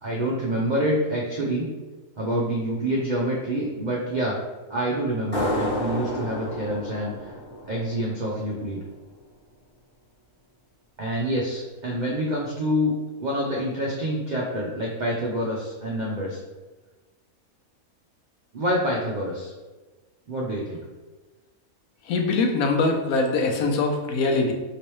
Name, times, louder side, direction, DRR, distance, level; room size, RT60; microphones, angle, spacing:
voice 1, 0.0-1.7 2.2-4.4 4.7-7.3 7.7-8.8 11.0-12.9 13.2-16.4 18.5-19.5 20.3-20.8, equal, 85° right, -3 dB, 0.4 m, -27 dB
sound 1, 5.3-8.6, equal, 10° right, 0.7 m, -31 dB
voice 2, 22.1-24.5, left 3 dB, 80° left, 3 dB, 1.1 m, -23 dB
3.2 x 3.0 x 3.0 m, 1.2 s
omnidirectional pair, 1.5 m